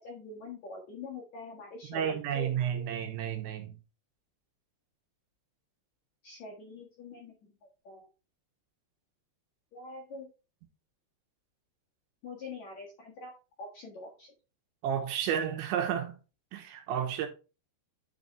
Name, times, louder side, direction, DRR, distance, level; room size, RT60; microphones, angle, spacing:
voice 1, 0.0-2.5 6.2-7.5 7.8-8.1 9.7-10.3 12.2-13.3 13.6-14.3, left 4 dB, 60° left, 2.0 m, -44 dB
voice 2, 1.8-3.8 14.8-16.2 16.5-17.3, right 9 dB, 90° right, 3.4 m, -31 dB
9.8 x 4.1 x 3.3 m
omnidirectional pair, 5.2 m